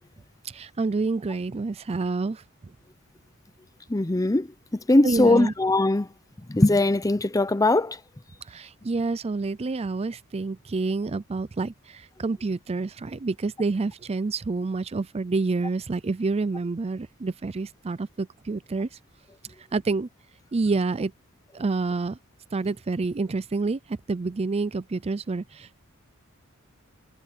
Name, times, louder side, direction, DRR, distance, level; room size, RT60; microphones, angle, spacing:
voice 1, 0.5-2.4 5.0-5.5 8.5-18.9 19.7-20.1 20.5-21.1 21.5-22.2 22.5-23.8 24.1-25.8, right 3 dB, 30° right, 0.4 m, -28 dB
voice 2, 3.9-4.5 4.9-6.1 6.5-8.0, left 2 dB, 15° left, 0.6 m, -20 dB
head